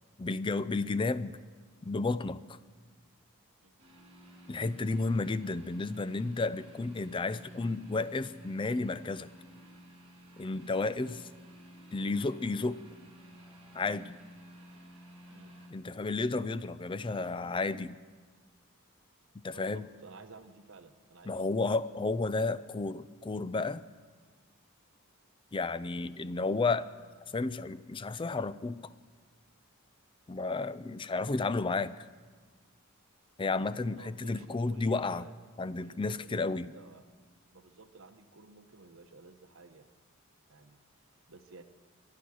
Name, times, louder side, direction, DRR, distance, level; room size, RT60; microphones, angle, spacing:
voice 1, 0.2-1.4 1.8-2.6 4.5-9.3 10.4-11.3 11.9-12.8 13.7-14.2 15.7-18.0 19.4-19.9 21.3-23.8 25.5-26.9 27.3-28.9 30.3-31.9 33.4-35.3 35.6-36.7, left 3 dB, 25° left, 15 dB, 0.4 m, -32 dB
sound 1, 3.8-15.7, equal, 30° right, 3.4 m, -53 dB
voice 2, 19.5-21.8 34.0-35.3 35.8-37.1 37.5-39.9 40.5-41.6, right 3 dB, 60° right, 8 dB, 1.1 m, -54 dB
24.0 x 8.6 x 6.3 m, 1.5 s
head